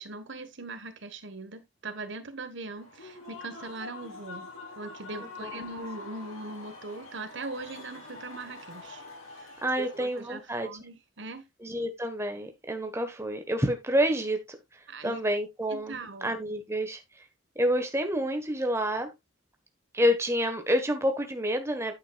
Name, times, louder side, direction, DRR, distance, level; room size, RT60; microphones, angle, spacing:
voice 1, 0.0-4.5 4.8-9.0 9.4-11.5 14.9-15.2 15.7-16.3, right 2 dB, 60° right, 1.5 m, -40 dB
Human voice / Cheering / Applause, 2.8-10.4, left 3 dB, 90° left, 5.1 m, -45 dB
voice 2, 9.6-10.7 11.6-14.4 15.0-17.0 17.5-19.1 19.9-21.9, equal, 15° right, 1.4 m, -28 dB
9.5 x 8.7 x 2.4 m
head